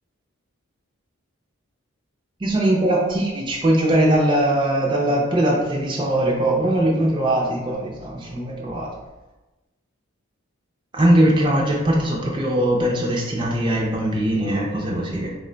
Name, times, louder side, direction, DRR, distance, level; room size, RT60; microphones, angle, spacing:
voice 1, 2.4-8.9 10.9-15.3, right 1 dB, 20° right, -2 dB, 0.4 m, -20 dB
3.6 x 2.2 x 3.7 m, 1.1 s
head